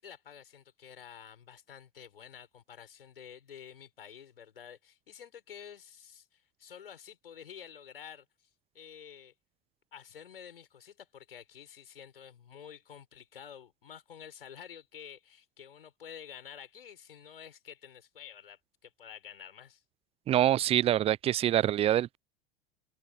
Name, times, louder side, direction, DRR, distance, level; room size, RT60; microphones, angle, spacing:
voice 1, 0.0-8.3 8.7-9.3 9.9-19.8, left 8 dB, 70° left, 6.4 m, -50 dB
voice 2, 20.3-22.2, right 12 dB, 20° right, 0.5 m, -25 dB
open air
figure-of-eight pair, 80°, 29 cm